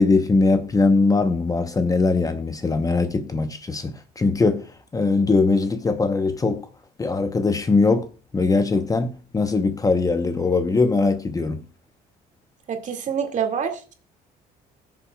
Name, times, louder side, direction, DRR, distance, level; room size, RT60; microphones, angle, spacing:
voice 1, 0.0-4.7 4.9-6.7 7.0-8.1 8.3-11.6, left 3 dB, 20° left, 0.8 m, -21 dB
voice 2, 12.7-13.9, right 7 dB, 45° right, 2.1 m, -26 dB
20.0 x 7.1 x 2.3 m
cardioid pair, 110°, 17 cm